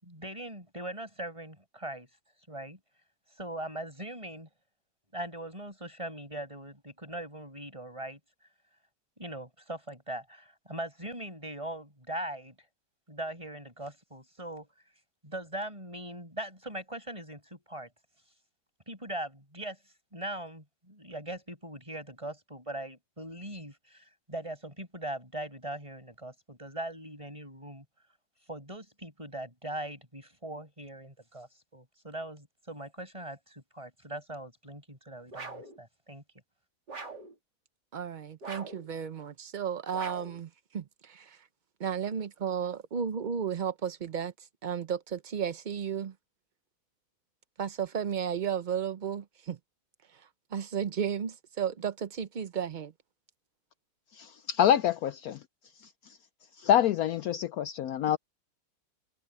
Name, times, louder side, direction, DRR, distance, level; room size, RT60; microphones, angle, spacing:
voice 1, 0.0-2.1 2.5-2.8 3.4-4.5 5.1-8.2 9.2-12.5 13.1-14.7 15.2-17.9 18.9-19.8 20.1-27.8 28.5-36.2, right 1 dB, 15° right, 7.4 m, -40 dB
sound 1, 35.3-35.8 36.9-37.3 38.4-38.9 39.9-40.4, right 3 dB, 85° right, 3.9 m, -42 dB
voice 2, 37.9-41.4 41.8-46.1 47.6-49.6 50.5-52.9, right 8 dB, 70° right, 0.4 m, -33 dB
voice 3, 54.2-55.4 56.6-58.2, left 10 dB, 70° left, 1.0 m, -26 dB
omnidirectional pair, 1.8 m